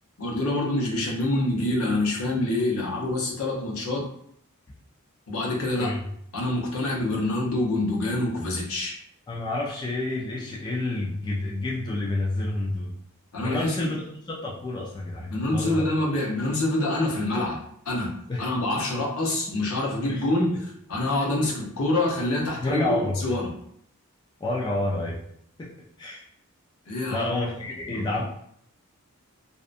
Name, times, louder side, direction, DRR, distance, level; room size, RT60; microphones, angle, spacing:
voice 1, 0.2-4.0 5.3-5.9 6.3-8.9 13.3-13.9 15.3-17.6 17.8-18.1 18.4-23.5 26.9-27.3 27.9-28.2, left 2 dB, 70° left, -2 dB, 0.7 m, -26 dB
voice 2, 9.3-12.9 13.4-15.8 18.3-18.5 18.8-18.9 20.1-20.2 21.1-21.5 22.6-23.2 24.4-25.2 25.6-25.7 26.0-26.2 27.1-28.2, left 2 dB, 20° left, -4 dB, 0.3 m, -29 dB
2.6 x 2.2 x 2.4 m, 0.69 s
head